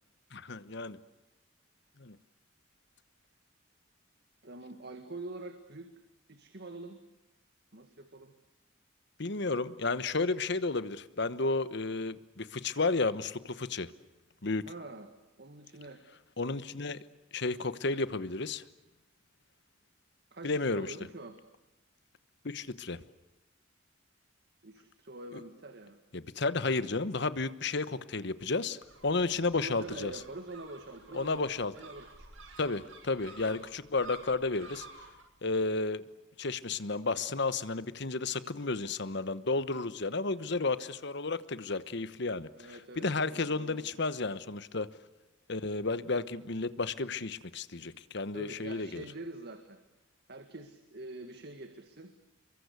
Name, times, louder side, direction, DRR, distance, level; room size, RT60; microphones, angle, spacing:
voice 1, 0.3-1.0 2.0-2.2 9.2-13.9 14.4-14.7 16.4-17.0 17.3-18.6 20.4-20.9 22.4-23.0 25.3-25.4 26.1-28.8 29.0-30.1 31.1-31.7 32.6-34.9 35.4-36.1 36.4-42.7 43.0-44.9 45.5-49.0, left 3 dB, 60° left, 15 dB, 1.1 m, -32 dB
voice 2, 4.4-5.9 6.3-7.0 7.7-8.3 14.7-15.1 15.4-16.0 20.3-21.4 24.6-26.0 29.5-32.5 42.6-43.9 48.3-49.8 50.3-52.1, right 2 dB, 55° right, 7 dB, 1.9 m, -45 dB
sound 1, 28.8-35.2, right 4 dB, 85° right, 6.8 m, -52 dB
28.0 x 23.5 x 8.3 m, 0.97 s
head